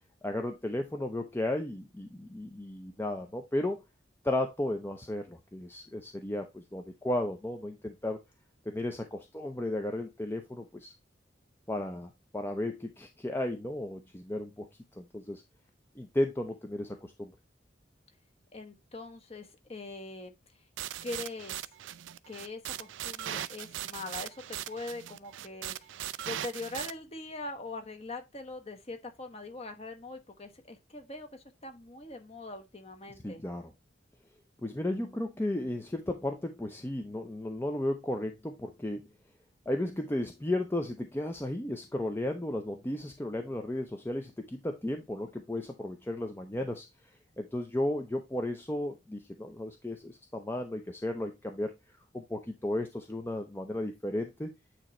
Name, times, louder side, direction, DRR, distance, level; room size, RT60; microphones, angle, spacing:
voice 1, 0.2-3.8 4.2-8.2 8.7-10.9 11.7-14.7 15.0-15.4 16.0-17.3 33.2-33.7 34.6-39.0 39.7-46.9 47.4-51.7 52.1-54.5, left 1 dB, 10° left, 0.6 m, -34 dB
voice 2, 18.5-20.3 21.0-21.6 22.3-25.9 26.3-33.4, left 2 dB, 35° left, 1.1 m, -42 dB
sound 1, 20.8-26.9, right 11 dB, 80° right, 0.4 m, -39 dB
9.0 x 3.0 x 4.3 m
head